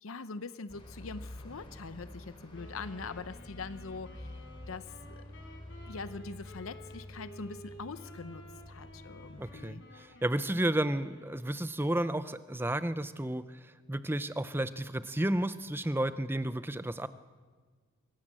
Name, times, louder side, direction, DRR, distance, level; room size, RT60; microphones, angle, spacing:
voice 1, 0.0-5.2 5.8-9.8, left 4 dB, 80° left, 13 dB, 0.7 m, -43 dB
sound 1, 0.7-9.7, left 1 dB, 25° left, 3.7 m, -48 dB
Wind instrument woodwind instrument, 2.5-11.6, right 1 dB, 60° left, 4.5 m, -53 dB
voice 2, 9.4-13.6 13.9-17.1, right 1 dB, 10° right, 13 dB, 0.6 m, -32 dB
24.5 x 17.0 x 7.5 m, 1.5 s
head